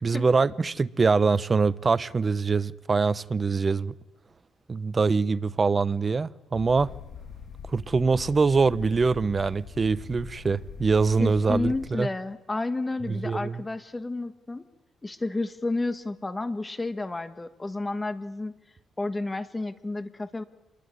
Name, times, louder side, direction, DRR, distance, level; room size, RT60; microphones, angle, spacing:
voice 1, 0.0-3.9 4.7-6.9 7.7-12.1 13.1-13.6, right 4 dB, 30° right, 0.9 m, -24 dB
sound 1, 6.5-11.9, left 7 dB, 60° left, 2.4 m, -42 dB
voice 2, 11.2-14.6 15.0-18.5 19.0-20.4, left 2 dB, 20° left, 1.6 m, -31 dB
27.5 x 22.0 x 9.8 m
cardioid pair, 90°, 0 cm